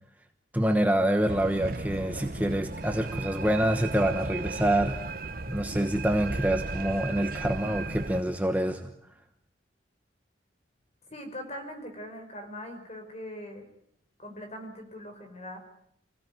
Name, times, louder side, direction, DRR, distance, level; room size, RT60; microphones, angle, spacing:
voice 1, 0.5-5.1 5.5-8.9, right 1 dB, 10° right, 5 dB, 1.1 m, -26 dB
sound 1, 1.2-8.2, right 3 dB, 50° right, 1.1 m, -36 dB
voice 2, 11.1-13.7 14.2-15.6, left 1 dB, 35° left, 5 dB, 5.3 m, -41 dB
27.0 x 16.5 x 9.4 m, 0.72 s
head